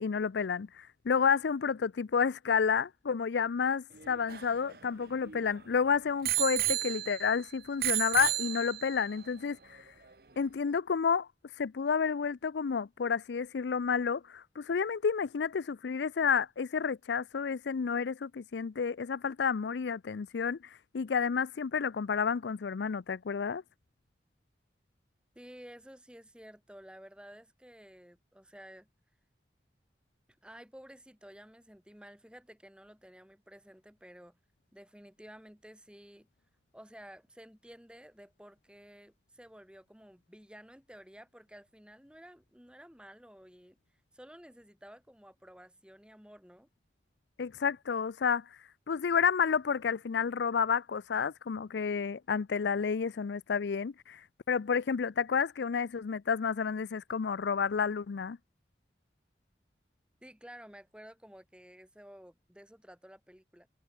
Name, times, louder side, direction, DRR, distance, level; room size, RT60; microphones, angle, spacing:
voice 1, 0.0-9.8 10.4-11.3 11.6-20.6 20.9-23.6 47.4-48.4 48.9-54.2 54.5-58.4, left 6 dB, 85° left, 0.5 m, -30 dB
Bicycle bell, 3.9-5.6 6.2-7.4 7.8-9.1 9.8-9.9, right 15 dB, 60° right, 1.1 m, -32 dB
voice 2, 25.4-28.9 30.4-34.4 34.7-36.3 36.7-43.8 44.1-46.7 60.2-63.7, equal, 5° right, 3.8 m, -53 dB
head